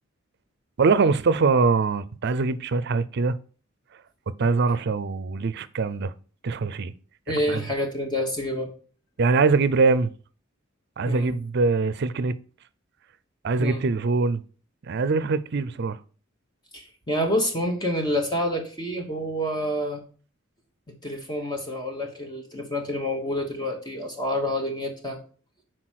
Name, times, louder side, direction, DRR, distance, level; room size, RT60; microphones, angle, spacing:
voice 1, 0.8-3.4 4.3-6.1 6.4-6.9 7.5-7.6 9.2-10.1 11.0-12.3 13.4-14.4 14.9-16.0, right 4 dB, 55° right, 0.5 m, -23 dB
voice 2, 7.3-8.7 11.0-11.3 13.6-13.8 16.7-20.0 20.9-25.2, equal, 20° left, 1.2 m, -28 dB
5.9 x 4.5 x 6.2 m
head